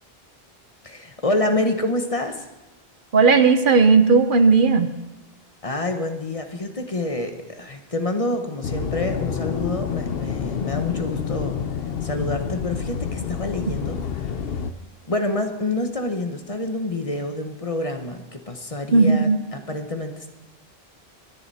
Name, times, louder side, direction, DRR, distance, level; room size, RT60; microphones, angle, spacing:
voice 1, 0.8-2.5 5.6-11.6 12.0-14.4 15.1-20.3, left 2 dB, 35° left, 6 dB, 1.2 m, -27 dB
voice 2, 3.1-4.9 18.9-19.4, right 4 dB, 55° right, 10 dB, 0.9 m, -15 dB
sound 1, 8.6-14.7, left 7 dB, 70° left, 0.9 m, -28 dB
22.5 x 9.6 x 4.2 m, 1.0 s
omnidirectional pair, 1.0 m